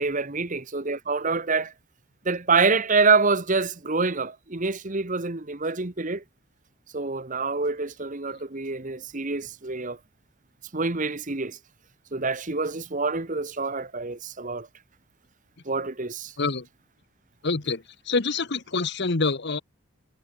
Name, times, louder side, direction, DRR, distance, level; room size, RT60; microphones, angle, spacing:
voice 1, 0.0-1.7 2.2-6.2 6.9-10.0 10.7-11.6 12.1-14.7 15.6-16.3, right 4 dB, 35° right, 1.2 m, -26 dB
voice 2, 17.4-19.6, left 3 dB, 50° left, 1.1 m, -26 dB
head